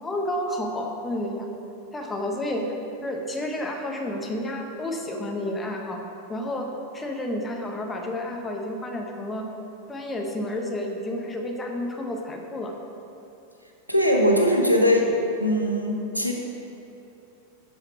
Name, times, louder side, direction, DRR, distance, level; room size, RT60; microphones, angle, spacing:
voice 1, 0.0-1.5 1.9-2.7 3.0-6.0 6.3-6.7 6.9-9.4 9.9-12.7, left 1 dB, 15° left, 1 dB, 1.1 m, -30 dB
voice 2, 13.9-15.1 15.4-16.3, equal, 90° right, 1 dB, 1.0 m, -20 dB
9.7 x 5.7 x 4.5 m, 2.9 s
figure-of-eight pair, 90°, 0 cm